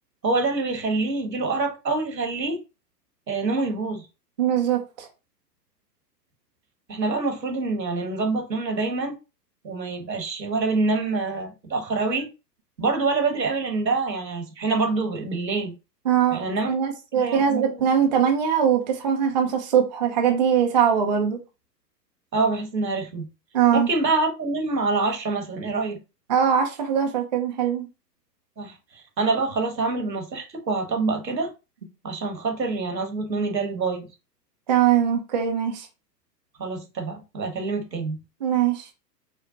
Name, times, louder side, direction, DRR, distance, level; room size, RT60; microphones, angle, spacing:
voice 1, 0.2-2.6 3.3-4.0 6.9-9.1 9.6-12.3 12.8-15.7 16.3-16.7 17.1-17.7 22.3-23.3 23.7-26.0 28.6-31.5 32.0-34.1 36.6-38.2, right 3 dB, 80° right, 1.2 m, -26 dB
voice 2, 4.4-5.1 16.1-21.4 23.5-23.9 26.3-27.9 34.7-35.9 38.4-38.9, right 8 dB, 30° right, 0.4 m, -21 dB
5.0 x 2.1 x 2.7 m
figure-of-eight pair, 105°, 50 cm